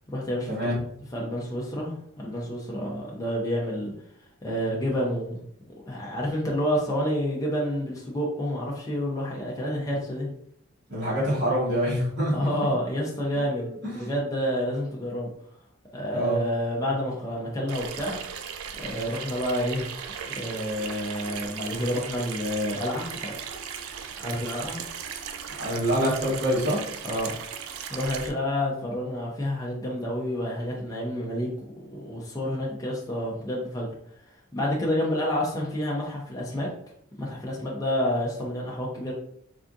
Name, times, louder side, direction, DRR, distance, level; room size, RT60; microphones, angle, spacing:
voice 1, 0.1-0.7 1.1-3.9 4.4-5.4 5.9-10.3 12.3-15.3 15.9-18.2 18.8-19.9 20.3-23.3 24.2-24.8 27.0-27.4 27.9-31.5 31.8-33.9 34.5-36.7 37.2-39.1, equal, 15° left, -4 dB, 0.5 m, -29 dB
voice 2, 10.9-12.5 13.6-14.1 16.1-16.4 25.6-26.8, equal, 55° right, -10 dB, 1.3 m, -26 dB
Water tap faucet / Sink (filling or washing), 17.7-28.3, right 7 dB, 90° right, 0.3 m, -37 dB
3.4 x 2.4 x 2.6 m, 0.70 s
head